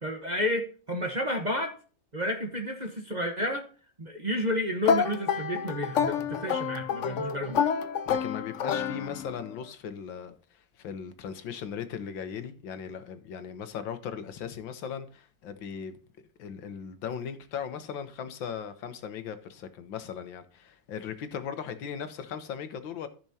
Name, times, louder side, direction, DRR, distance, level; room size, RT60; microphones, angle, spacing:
voice 1, 0.0-1.8 2.1-3.7 4.0-7.7, left 1 dB, 30° right, 1.0 m, -31 dB
sound 1, 4.8-9.5, left 7 dB, 65° left, 0.7 m, -28 dB
voice 2, 8.1-16.0 16.4-23.1, left 7 dB, 80° left, 1.8 m, -38 dB
14.0 x 6.1 x 2.8 m
omnidirectional pair, 2.1 m